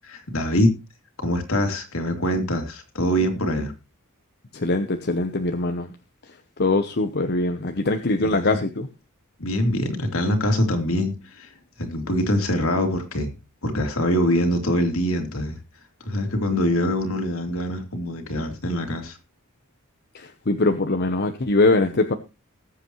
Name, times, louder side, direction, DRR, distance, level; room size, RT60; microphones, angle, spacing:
voice 1, 0.0-0.7 1.2-3.7 8.2-8.6 9.4-11.5 11.8-13.3 13.6-15.6 16.0-19.2, equal, 70° left, 2.8 m, -24 dB
voice 2, 4.5-5.9 6.6-8.9 20.1-22.1, left 2 dB, 50° left, 0.9 m, -22 dB
19.5 x 8.1 x 3.1 m
head